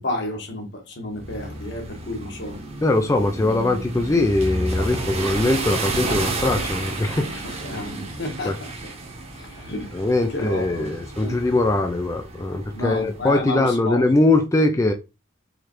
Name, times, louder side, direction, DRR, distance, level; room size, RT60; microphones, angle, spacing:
voice 1, 0.0-2.6 6.0-6.7 7.6-8.9 9.4-10.9 11.2-11.4 12.7-14.1, left 1 dB, 55° left, 1.3 m, -31 dB
sound 1, 1.1-13.3, right 2 dB, 30° right, 0.9 m, -31 dB
voice 2, 2.8-7.4 8.4-8.6 9.9-14.9, left 2 dB, 15° left, 0.3 m, -21 dB
4.8 x 3.2 x 3.0 m
head